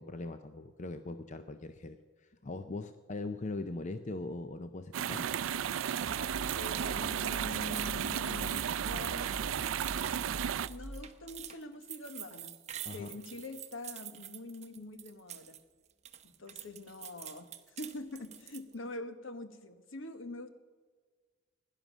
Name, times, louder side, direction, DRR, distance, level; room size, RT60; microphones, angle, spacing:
voice 1, 0.0-5.3 12.9-13.1, left 2 dB, 40° left, 9 dB, 0.6 m, -41 dB
sound 1, 4.9-10.7, right 9 dB, 85° right, 0.4 m, -34 dB
sound 2, 6.0-11.5, right 1 dB, 60° right, 0.8 m, -44 dB
sound 3, 6.5-15.6 15.9-18.7, right 11 dB, 35° right, 0.9 m, -47 dB
voice 2, 6.6-9.7 10.7-12.6 12.9-15.6 16.2-20.5, left 2 dB, 75° left, 9 dB, 1.3 m, -45 dB
16.5 x 11.0 x 6.2 m, 1.5 s
head